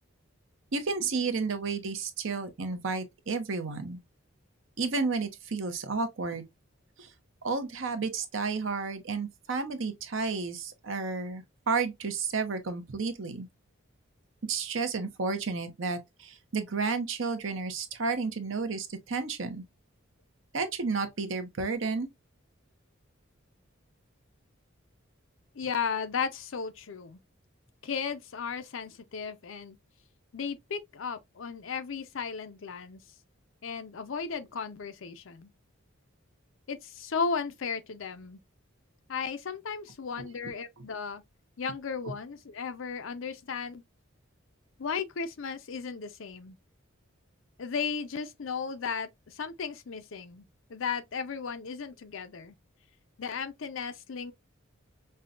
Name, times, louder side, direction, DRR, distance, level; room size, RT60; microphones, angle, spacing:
voice 1, 0.7-4.0 4.8-6.4 7.0-7.1 7.4-13.5 14.4-19.6 20.5-22.1, right 4 dB, 70° right, 0.8 m, -32 dB
voice 2, 25.5-27.2 27.8-29.8 30.3-33.0 33.6-35.5 36.7-38.4 39.1-41.2 41.6-43.8 44.8-46.6 47.6-52.6 53.2-54.3, left 5 dB, 70° left, 0.5 m, -35 dB
5.4 x 2.2 x 2.4 m
head